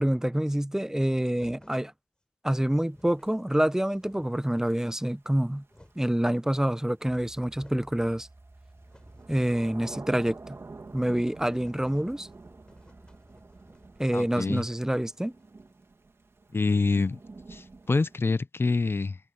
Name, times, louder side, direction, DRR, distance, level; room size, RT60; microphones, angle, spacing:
voice 1, 0.0-1.9 2.4-5.6 6.0-8.3 9.3-10.6 10.9-12.3 14.0-15.3, right 1 dB, 10° right, 0.8 m, -27 dB
sound 1, 1.3-1.9 2.5-2.6 2.8-3.3 3.7-4.6 5.3-6.2 7.0-7.1 7.3-7.9 8.3-10.3 10.6-10.7 11.0-11.1 11.5-16.0, left 1 dB, 20° left, 4.4 m, -58 dB
Thunder / Rain, 2.7-18.2, right 3 dB, 80° right, 2.7 m, -49 dB
sound 2, 7.1-14.2, right 2 dB, 45° right, 4.5 m, -55 dB
voice 2, 14.1-14.6 16.5-17.2 17.5-19.2, left 3 dB, 60° left, 0.6 m, -26 dB
wide cardioid pair, 45°, 4 cm